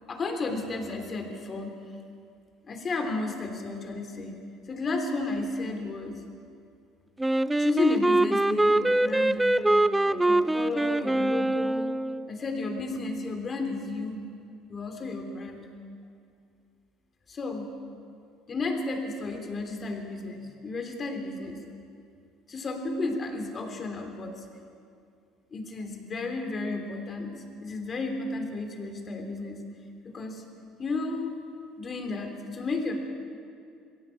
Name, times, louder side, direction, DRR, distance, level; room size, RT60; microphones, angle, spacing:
voice 1, 0.1-1.8 2.7-4.4 4.7-6.2 7.6-9.6 10.1-11.9 12.3-14.2 14.7-15.7 17.3-17.7 18.5-21.6 22.5-24.4 25.5-29.6 30.0-30.4 30.8-31.3 31.8-32.9, left 3 dB, 30° left, 4 dB, 3.3 m, -33 dB
Wind instrument woodwind instrument, 7.2-12.3, right 1 dB, 10° right, 0.5 m, -24 dB
22.0 x 16.5 x 8.6 m, 2.4 s
cardioid pair, 115°, 0 cm